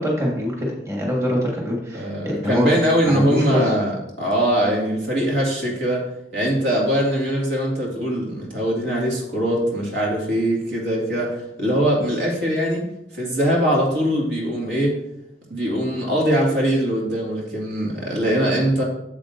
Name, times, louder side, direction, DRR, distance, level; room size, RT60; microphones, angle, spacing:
voice 1, 0.0-2.8 3.0-3.7, equal, 15° right, -2 dB, 1.6 m, -24 dB
voice 2, 1.9-3.9 4.2-6.0 6.3-12.8 13.1-15.0 15.5-18.8, equal, 75° right, -2 dB, 2.1 m, -22 dB
8.6 x 7.3 x 2.6 m, 0.83 s
head